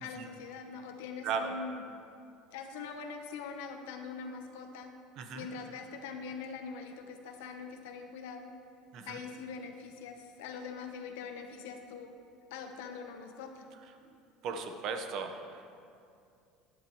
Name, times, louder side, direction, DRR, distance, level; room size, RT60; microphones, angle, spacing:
voice 1, 0.0-1.8 2.5-5.0 5.3-8.5 9.0-12.2 12.5-13.7, left 5 dB, 85° left, 5 dB, 1.1 m, -43 dB
voice 2, 1.2-1.5 5.2-5.5 8.9-9.2 14.4-15.4, right 5 dB, 55° right, 5 dB, 1.2 m, -36 dB
15.0 x 10.5 x 3.2 m, 2.5 s
supercardioid pair, 115°, 0 cm